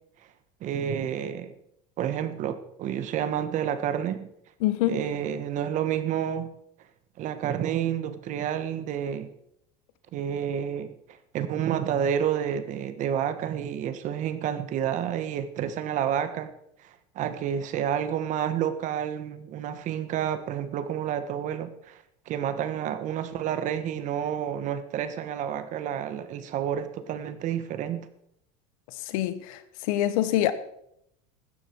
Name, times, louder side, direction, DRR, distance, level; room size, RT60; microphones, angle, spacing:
voice 1, 0.6-1.5 2.0-4.3 4.9-6.5 7.2-9.3 10.1-10.9 11.3-16.5 16.8-22.0 22.3-28.1, right 9 dB, 45° right, 1.5 m, -29 dB
voice 2, 4.6-5.1 29.0-29.6 29.9-30.5, left 13 dB, 80° left, 1.4 m, -25 dB
15.5 x 13.0 x 4.7 m
supercardioid pair, 140°, 18 cm